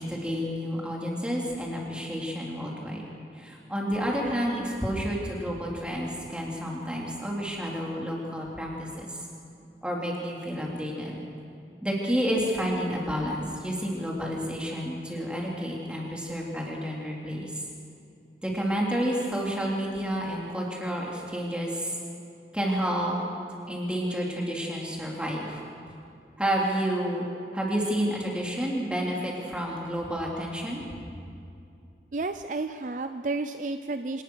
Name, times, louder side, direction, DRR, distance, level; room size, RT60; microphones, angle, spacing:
voice 1, 0.0-3.0 3.4-9.2 9.8-11.2 11.8-17.5 18.4-22.0 22.5-23.1 23.7-25.6 26.4-27.3 27.5-30.8, equal, 5° right, -3 dB, 3.4 m, -30 dB
voice 2, 32.1-34.2, right 3 dB, 45° right, 9 dB, 0.5 m, -31 dB
25.5 x 19.0 x 6.4 m, 2.5 s
head